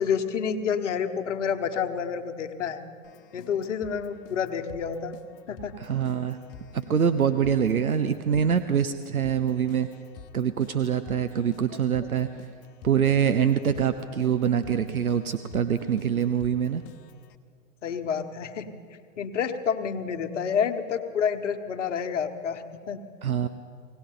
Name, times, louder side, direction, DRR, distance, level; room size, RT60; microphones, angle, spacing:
voice 1, 0.0-2.8 3.3-5.1 5.5-5.8 12.0-12.1 17.8-18.8 19.2-23.0, left 7 dB, 60° left, 8 dB, 1.1 m, -29 dB
Keyboard (musical), 3.0-17.4, left 7 dB, 40° left, 0.9 m, -49 dB
voice 2, 5.8-6.4 6.7-9.9 10.3-12.3 12.8-16.8 23.2-23.5, right 8 dB, 85° right, 11 dB, 0.7 m, -24 dB
18.0 x 18.0 x 3.9 m, 2.2 s
figure-of-eight pair, 110°, 42 cm